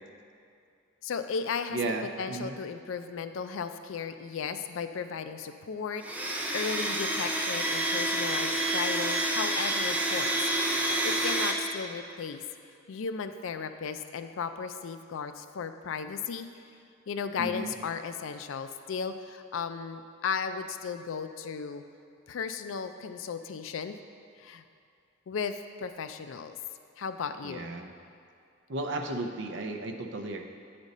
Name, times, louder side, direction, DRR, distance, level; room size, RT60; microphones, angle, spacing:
voice 1, 1.0-1.8 2.2-12.4 12.9-16.5 17.1-21.8 22.3-24.0 24.4-24.6 25.3-26.6 27.0-27.7, left 6 dB, 75° left, 9 dB, 0.4 m, -35 dB
voice 2, 1.7-2.6 17.4-17.7 27.4-27.9 28.7-30.5, right 2 dB, 60° right, 4 dB, 0.6 m, -34 dB
Domestic sounds home sounds, 6.0-11.5, right 1 dB, 5° right, 0.4 m, -28 dB
8.2 x 5.1 x 4.1 m, 2.4 s
head